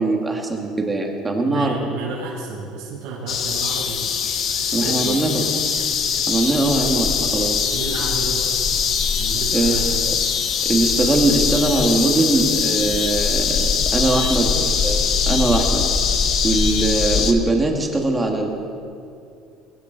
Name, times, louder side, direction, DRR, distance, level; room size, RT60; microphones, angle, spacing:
voice 1, 0.0-1.7 4.7-5.8 6.3-7.7 9.5-10.1 10.6-15.0 15.3-15.8 16.4-18.5, right 2 dB, 15° right, 2 dB, 1.7 m, -21 dB
voice 2, 1.5-4.0 4.8-5.2 6.5-7.0 7.7-8.5 9.1-9.9 14.1-14.6, right 4 dB, 85° right, -8 dB, 5.1 m, -32 dB
sound 1, 3.3-17.3, left 6 dB, 45° left, 1.2 m, -22 dB
21.5 x 15.5 x 3.9 m, 2.4 s
cardioid pair, 155°, 0 cm